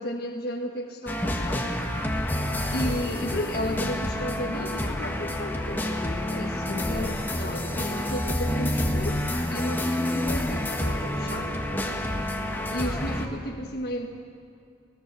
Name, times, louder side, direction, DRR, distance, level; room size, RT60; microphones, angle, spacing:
voice 1, 0.0-1.7 2.7-9.2 9.5-11.5 12.7-14.2, left 1 dB, 55° left, -1 dB, 1.6 m, -33 dB
sound 1, 1.1-13.3, left 1 dB, 10° left, 1.5 m, -28 dB
28.0 x 17.5 x 7.0 m, 2.5 s
head